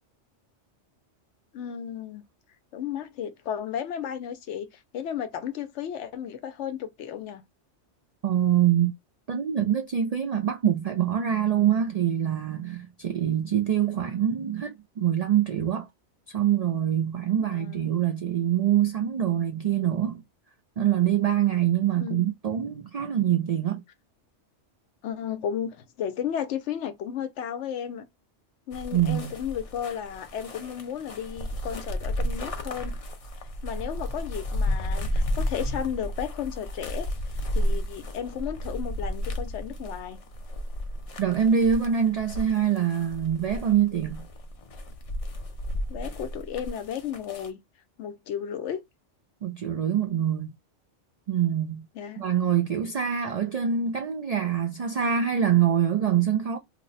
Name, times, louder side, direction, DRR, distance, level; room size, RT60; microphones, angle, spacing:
voice 1, 1.5-2.2 2.7-7.4 17.4-17.9 22.0-22.2 25.0-28.0 28.7-33.0 33.6-40.2 45.9-47.6 48.0-48.8 51.9-52.2, left 9 dB, 80° left, 0.9 m, -34 dB
voice 2, 8.2-8.9 9.3-15.9 16.3-20.2 20.8-23.8 28.9-29.4 41.2-44.3 49.4-50.5 51.3-51.9 52.2-56.6, right 9 dB, 85° right, 0.3 m, -24 dB
sound 1, 28.7-47.5, equal, 45° left, 0.5 m, -33 dB
2.9 x 2.0 x 3.9 m
omnidirectional pair, 1.2 m